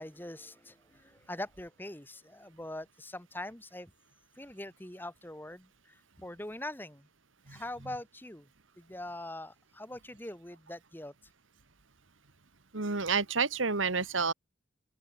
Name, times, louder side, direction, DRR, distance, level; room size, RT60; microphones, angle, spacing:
voice 1, 0.0-3.9 4.4-7.1 7.5-8.5 8.8-11.1, left 1 dB, 10° left, 1.8 m, -43 dB
voice 2, 12.7-14.3, right 4 dB, 80° right, 1.8 m, -29 dB
open air
head